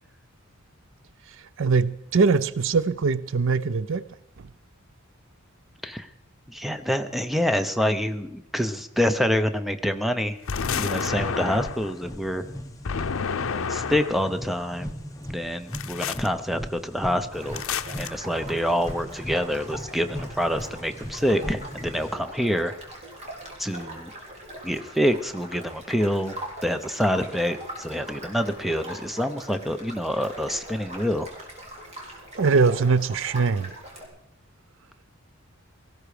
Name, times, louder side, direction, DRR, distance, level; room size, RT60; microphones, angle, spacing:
voice 1, 1.6-4.0 32.4-33.7, right 4 dB, 65° right, 0.5 m, -22 dB
voice 2, 6.5-10.4 10.7-12.5 13.7-14.9 15.3-17.6 18.0-22.7 23.6-24.1 24.6-26.4 26.6-31.3, equal, ahead, 0.8 m, -26 dB
sound 1, 10.5-11.9 12.8-14.3 15.7-16.3 17.5-18.1, left 6 dB, 75° left, 0.6 m, -29 dB
sound 2, 10.5-22.1, equal, 15° left, 1.1 m, -38 dB
sound 3, 17.3-34.0, right 1 dB, 30° right, 3.7 m, -41 dB
18.0 x 15.0 x 5.0 m
head